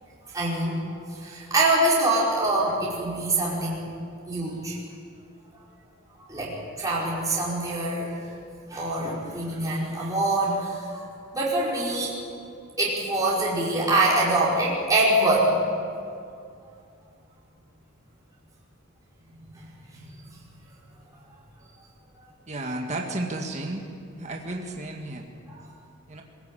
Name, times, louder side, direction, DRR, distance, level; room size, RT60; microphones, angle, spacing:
voice 1, 0.3-0.8 1.1-3.9 4.2-4.8 6.3-8.3 8.7-11.0 11.3-12.2 12.8-15.7 19.6-20.2 25.5-25.6, right 2 dB, 15° right, -7 dB, 5.0 m, -25 dB
voice 2, 22.5-23.9 24.2-25.3 26.1-26.2, right 2 dB, 35° right, 1 dB, 1.9 m, -32 dB
23.5 x 16.5 x 8.8 m, 2.3 s
head